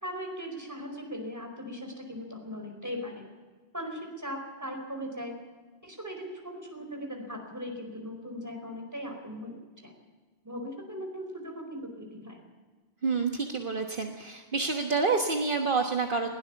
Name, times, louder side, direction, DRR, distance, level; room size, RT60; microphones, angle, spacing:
voice 1, 0.0-3.3 3.7-5.4 5.8-9.9 10.4-12.4, equal, 15° right, 3 dB, 4.7 m, -39 dB
voice 2, 13.0-16.3, right 4 dB, 55° right, 3 dB, 1.6 m, -28 dB
21.0 x 17.5 x 7.1 m, 1.4 s
omnidirectional pair, 1.1 m